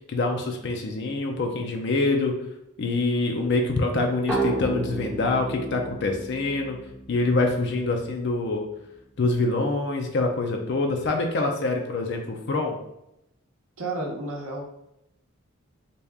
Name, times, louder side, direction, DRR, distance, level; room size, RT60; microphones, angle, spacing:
voice 1, 0.1-2.4 2.8-6.8 7.1-8.6 9.2-12.8, left 2 dB, 55° left, 3 dB, 0.5 m, -25 dB
sound 1, 4.3-7.8, right 2 dB, 5° right, 1.1 m, -32 dB
voice 2, 13.8-14.6, right 2 dB, 70° right, 0 dB, 0.8 m, -31 dB
4.1 x 2.4 x 3.4 m, 0.82 s
head